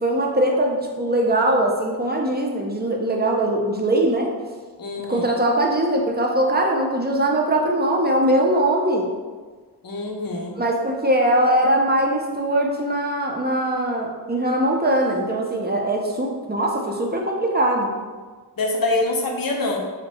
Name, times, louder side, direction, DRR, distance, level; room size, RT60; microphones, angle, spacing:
voice 1, 0.0-4.3 5.1-9.1 10.6-17.9, right 1 dB, 25° right, 0 dB, 0.5 m, -21 dB
voice 2, 4.8-5.4 9.8-10.6 18.6-19.8, left 2 dB, 55° left, 0 dB, 0.6 m, -25 dB
2.6 x 2.2 x 4.0 m, 1.4 s
cardioid pair, 45°, 42 cm